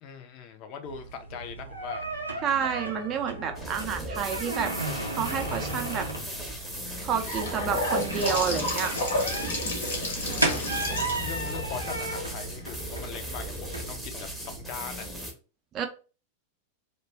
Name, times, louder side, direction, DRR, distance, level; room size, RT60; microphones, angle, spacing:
voice 1, 0.0-2.1 10.3-15.1, left 6 dB, 40° left, 0.5 m, -41 dB
sound 1, 0.8-14.7, right 2 dB, 85° right, 0.5 m, -35 dB
voice 2, 2.4-4.7 5.2-6.1 7.0-9.0 15.7-15.9, right 7 dB, 30° right, 0.5 m, -29 dB
sound 2, 3.6-15.3, equal, ahead, 0.7 m, -38 dB
Gurgling / Sink (filling or washing) / Bathtub (filling or washing), 6.9-12.9, left 1 dB, 60° left, 0.8 m, -31 dB
2.3 x 2.2 x 3.2 m
figure-of-eight pair, 90°, 0 cm